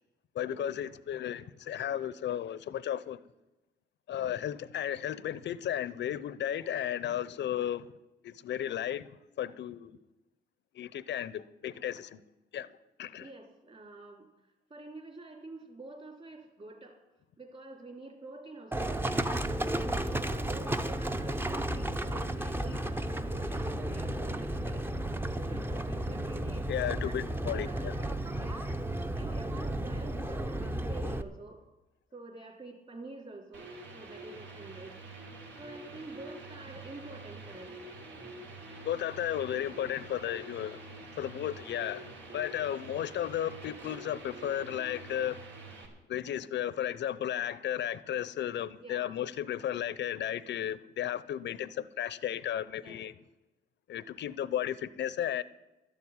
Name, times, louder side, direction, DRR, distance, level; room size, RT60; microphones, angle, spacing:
voice 1, 0.4-3.2 4.1-7.8 8.2-9.0 9.4-10.0 10.8-12.2 12.5-12.7 13.0-13.3 26.7-27.9 38.8-40.8 41.2-45.4 46.1-53.1 53.9-55.4, left 10 dB, 65° left, 0.7 m, -34 dB
voice 2, 13.2-14.3 14.7-17.0 17.4-24.9 25.3-26.7 27.0-27.1 27.4-28.7 29.1-31.6 32.1-35.0 35.6-37.9 48.8-49.2 52.8-53.0, right 2 dB, 30° right, 3.7 m, -47 dB
Livestock farm animals working animals, 18.7-31.2, right 1 dB, 10° right, 0.8 m, -33 dB
sound 1, 33.5-45.9, right 2 dB, 75° right, 3.6 m, -47 dB
12.5 x 7.3 x 9.8 m
cardioid pair, 90°, 20 cm